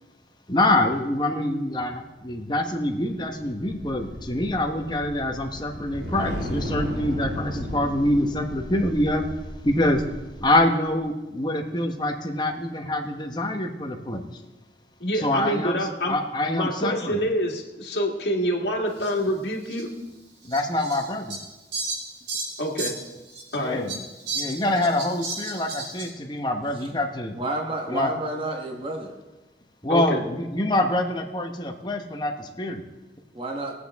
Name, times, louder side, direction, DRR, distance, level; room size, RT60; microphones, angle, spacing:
voice 1, 0.5-9.3 9.6-10.1 10.4-14.4 15.1-17.2 20.4-21.4 23.6-24.0 24.3-27.4 27.9-28.1 29.8-32.8, left 1 dB, 25° left, 4 dB, 1.0 m, -25 dB
sound 1, 2.4-10.8, equal, 70° right, 2.3 m, -35 dB
voice 2, 15.0-16.2 16.5-19.9 22.6-23.0 23.5-23.9 29.9-30.2, equal, 65° left, -2 dB, 1.9 m, -26 dB
Fowl, 19.0-19.1 19.7-19.8 20.5-23.6 23.9-26.1, right 3 dB, 90° right, 4.6 m, -33 dB
voice 3, 27.3-29.1 33.4-33.7, right 2 dB, 30° right, 1 dB, 1.2 m, -30 dB
21.0 x 8.1 x 3.6 m, 1.1 s
head